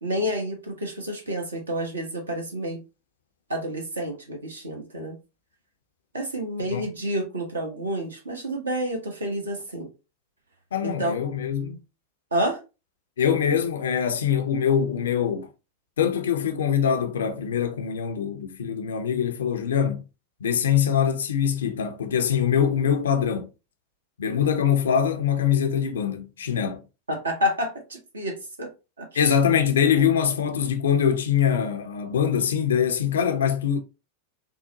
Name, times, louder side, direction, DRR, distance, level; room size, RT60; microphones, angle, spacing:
voice 1, 0.0-2.8 3.5-5.2 6.1-9.9 10.8-11.2 12.3-12.6 27.1-28.7 29.0-29.3, equal, 75° right, 1.0 m, -29 dB
voice 2, 10.7-11.8 13.2-15.5 16.0-20.0 20.4-23.5 24.2-26.8 29.1-33.8, left 8 dB, 65° left, 0.5 m, -23 dB
3.7 x 2.1 x 2.7 m
figure-of-eight pair, 90°, 0 cm